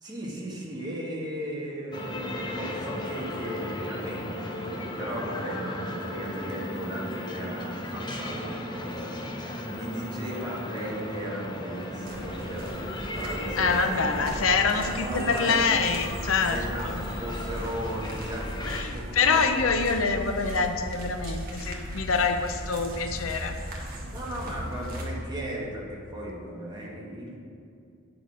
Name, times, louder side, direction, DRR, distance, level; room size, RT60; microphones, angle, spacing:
voice 1, 0.0-14.0 15.0-15.7 16.5-18.5 18.9-19.6 24.0-27.4, equal, 20° right, -4 dB, 1.4 m, -36 dB
sound 1, 1.9-18.8, left 1 dB, 20° left, 0.7 m, -35 dB
sound 2, 12.1-25.1, equal, 45° right, 1.2 m, -37 dB
voice 2, 13.6-17.0 18.6-23.6, left 4 dB, 80° left, 7 dB, 0.6 m, -26 dB
8.3 x 6.1 x 4.9 m, 2.5 s
head